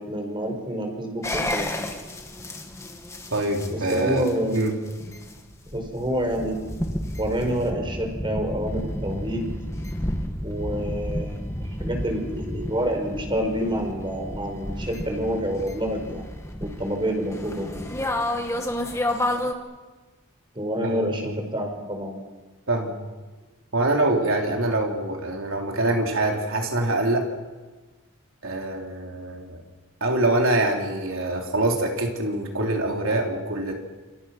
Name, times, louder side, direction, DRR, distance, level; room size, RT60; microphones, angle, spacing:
voice 1, 0.0-1.7 3.7-5.1 5.7-6.6 7.2-9.5 10.4-16.2 16.6-17.7 20.6-22.2, equal, 20° right, 4 dB, 5.2 m, -28 dB
sound 1, 1.2-19.5, left 1 dB, 15° left, 2.1 m, -31 dB
voice 2, 3.3-4.3 4.5-4.7 20.8-21.4 22.7-22.9 23.7-27.3 28.4-29.6 30.0-33.7, right 2 dB, 65° right, 1 dB, 4.1 m, -24 dB
28.5 x 28.5 x 6.1 m, 1.2 s
head